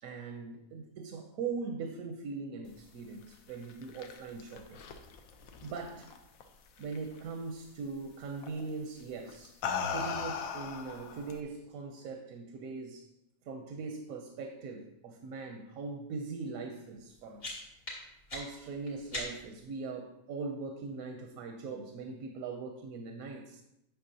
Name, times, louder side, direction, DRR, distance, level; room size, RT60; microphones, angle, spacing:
voice 1, 0.0-4.8 5.6-6.1 6.8-9.6 9.9-13.1 13.4-17.7 18.3-23.6, right 4 dB, 85° right, 5 dB, 1.1 m, -41 dB
sound 1, 3.5-6.4 6.8-7.2 8.4-8.7 9.3-11.4, left 6 dB, 85° left, 1.1 m, -38 dB
sound 2, 17.0-19.7, left 1 dB, 65° left, 2.5 m, -43 dB
8.3 x 5.8 x 2.7 m, 0.86 s
omnidirectional pair, 1.4 m